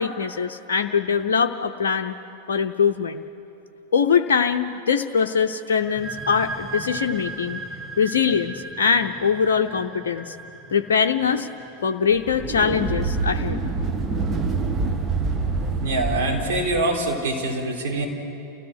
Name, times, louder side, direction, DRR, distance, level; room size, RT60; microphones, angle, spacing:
voice 1, 0.0-2.1 2.5-3.2 3.9-7.6 8.0-10.4 10.7-11.5 11.8-13.6, left 6 dB, 65° left, 4 dB, 0.7 m, -22 dB
sound 1, 5.8-13.3, right 3 dB, ahead, 1.5 m, -37 dB
sound 2, 12.1-17.0, right 3 dB, 20° right, 1.3 m, -26 dB
voice 2, 15.8-18.0, right 2 dB, 55° right, -1 dB, 3.9 m, -24 dB
29.5 x 16.0 x 6.3 m, 2.7 s
figure-of-eight pair, 90°, 0 cm